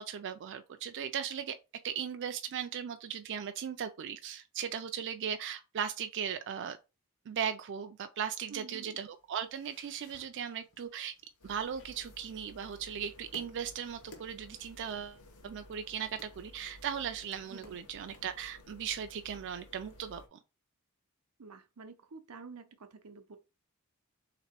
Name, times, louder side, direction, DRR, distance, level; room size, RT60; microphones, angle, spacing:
voice 1, 0.0-1.6 1.8-6.8 7.3-11.1 11.4-20.4, right 8 dB, 55° right, 0.4 m, -38 dB
voice 2, 8.5-9.0 17.5-17.8 21.4-23.4, right 4 dB, 90° right, 0.7 m, -49 dB
sound 1, 9.0-18.2, left 2 dB, 65° left, 1.4 m, -59 dB
sound 2, 11.4-20.3, left 1 dB, 85° left, 0.9 m, -56 dB
3.6 x 3.0 x 4.4 m
head